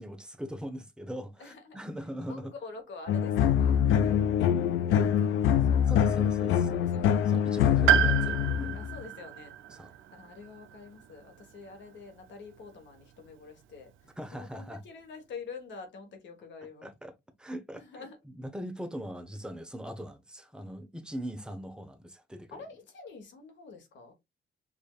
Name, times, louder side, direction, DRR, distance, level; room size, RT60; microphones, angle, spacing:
voice 1, 0.0-2.5 5.9-6.7 7.2-8.8 9.7-9.9 14.2-14.8 16.6-22.6, equal, 5° right, 0.8 m, -41 dB
voice 2, 1.4-1.8 2.2-4.4 4.8-5.9 6.5-8.3 8.7-9.5 10.1-13.9 14.3-16.9 17.7-18.2 22.5-24.1, left 4 dB, 65° left, 1.3 m, -47 dB
sound 1, 3.1-9.0, left 8 dB, 90° left, 0.4 m, -25 dB
Piano, 7.9-12.0 13.3-13.4, right 12 dB, 80° right, 0.4 m, -30 dB
5.0 x 2.6 x 2.3 m
cardioid pair, 90°, 20 cm